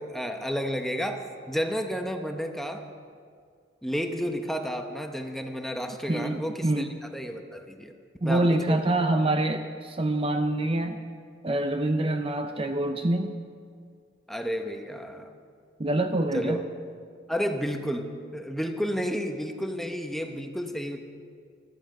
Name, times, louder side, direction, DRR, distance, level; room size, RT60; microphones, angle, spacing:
voice 1, 0.0-2.8 3.8-7.9 8.2-8.9 14.3-15.3 16.3-16.6 17.3-21.0, equal, ahead, 5 dB, 0.8 m, -31 dB
voice 2, 6.1-6.9 8.2-11.0 11.4-13.4 15.8-16.6, right 1 dB, 30° right, 7 dB, 0.6 m, -26 dB
16.5 x 13.5 x 5.3 m, 2.2 s
head